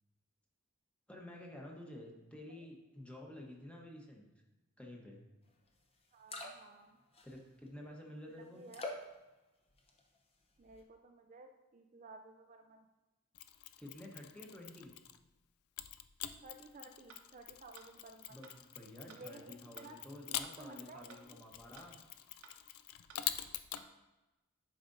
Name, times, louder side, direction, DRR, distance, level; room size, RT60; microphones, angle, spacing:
voice 1, 1.1-4.2 4.8-5.2 7.2-8.6 13.8-14.9 18.3-22.0, left 1 dB, 5° left, -1 dB, 1.0 m, -51 dB
sound 1, 5.7-5.8 6.0-6.8 7.1-7.7 8.7-9.2 9.7-10.2 10.5-10.8, left 2 dB, 30° left, 0.7 m, -45 dB
voice 2, 6.1-7.0 8.3-8.8 10.6-12.9 16.4-18.4 19.1-20.0 20.3-21.4, right 2 dB, 35° right, 5 dB, 0.3 m, -55 dB
Mechanisms, 13.3-15.3 15.8-23.9, left 11 dB, 90° left, 0.4 m, -46 dB
sound 2, 17.1-17.2 17.8-17.9 18.4-18.5 19.1-19.2 19.8-19.9 20.4-20.5 21.1-21.2 21.8-21.9 22.4-22.5 23.1-23.2 23.8-23.9, right 5 dB, 80° right, 0.9 m, -56 dB
10.5 x 5.0 x 2.6 m, 1.1 s
head